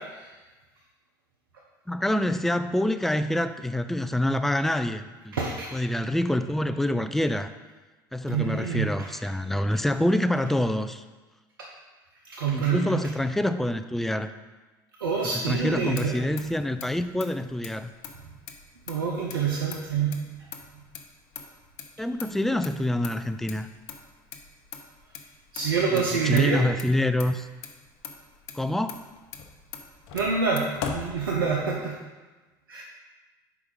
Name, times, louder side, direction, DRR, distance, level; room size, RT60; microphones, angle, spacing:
voice 1, 1.9-5.4 5.7-7.5 8.1-11.0 12.5-14.3 15.2-17.9 22.0-23.7 25.9-27.5 28.5-29.0, left 1 dB, ahead, 10 dB, 0.4 m, -26 dB
voice 2, 5.3-5.7 8.3-8.9 12.3-13.0 15.0-16.2 18.9-20.1 25.5-26.6 30.1-30.6 30.9-31.9 32.7-32.8, right 5 dB, 85° right, -2 dB, 0.7 m, -26 dB
Motor vehicle (road), 15.6-31.8, left 6 dB, 65° left, 0.7 m, -42 dB
4.8 x 4.8 x 5.3 m, 1.2 s
hypercardioid pair, 70°, 11 cm